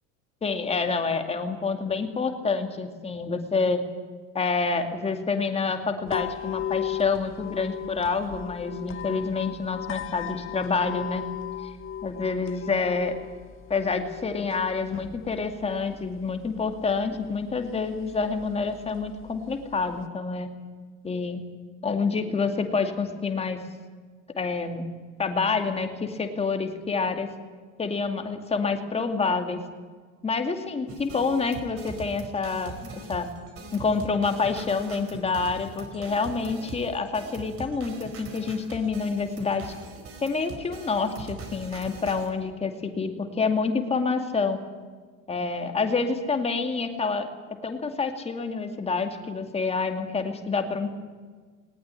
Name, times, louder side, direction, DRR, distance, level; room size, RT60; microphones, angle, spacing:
voice 1, 0.4-3.8 4.3-11.3 11.6-11.7 12.0-13.2 13.7-20.5 21.0-21.4 21.8-23.6 24.4-24.9 25.2-27.3 27.8-29.6 30.2-33.3 33.7-39.7 40.2-44.6 45.3-47.3 47.6-50.9, left 4 dB, 15° left, 6 dB, 2.3 m, -27 dB
sound 1, 6.1-20.1, left 10 dB, 35° left, 1.4 m, -37 dB
sound 2, 30.9-42.3, right 3 dB, 40° right, 4.7 m, -42 dB
19.5 x 19.0 x 9.9 m, 1.5 s
cardioid pair, 150°, 35 cm